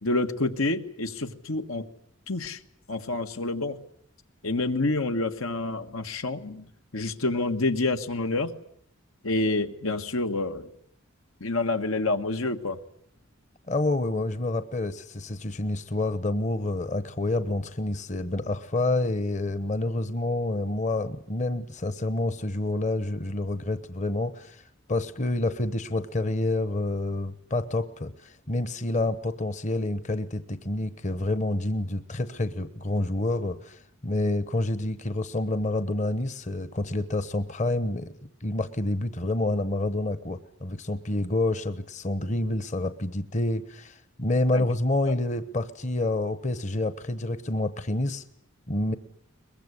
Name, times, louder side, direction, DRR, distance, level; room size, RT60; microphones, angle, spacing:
voice 1, 0.0-1.9 2.3-2.6 2.9-3.8 4.4-6.7 6.9-8.5 9.2-10.7 11.4-12.8 44.5-44.6 45.1-45.2, left 2 dB, 85° left, 7 dB, 1.7 m, -28 dB
voice 2, 13.7-24.6 24.9-38.1 38.4-48.2 48.7-49.0, left 2 dB, 35° left, 13 dB, 1.0 m, -28 dB
23.0 x 21.5 x 9.7 m, 0.68 s
head